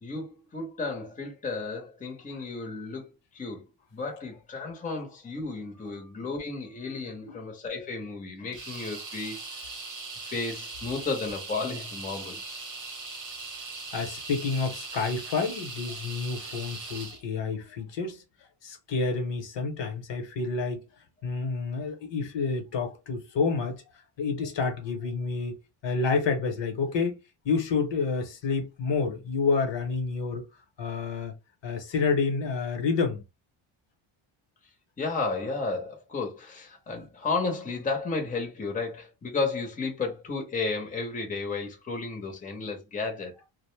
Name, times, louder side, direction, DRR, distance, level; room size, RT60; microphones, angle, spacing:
voice 1, 0.0-3.6 3.9-9.4 10.2-12.4 35.0-43.3, left 3 dB, 15° left, 0.6 m, -33 dB
sound 1, 8.5-17.2, right 3 dB, 40° right, 0.8 m, -40 dB
voice 2, 13.9-18.2 18.6-20.8 21.2-23.8 24.2-25.6 25.8-27.2 27.4-30.5 30.8-31.3 31.6-33.2, left 4 dB, 60° left, 0.9 m, -29 dB
2.5 x 2.0 x 3.1 m
wide cardioid pair, 150°, 50 cm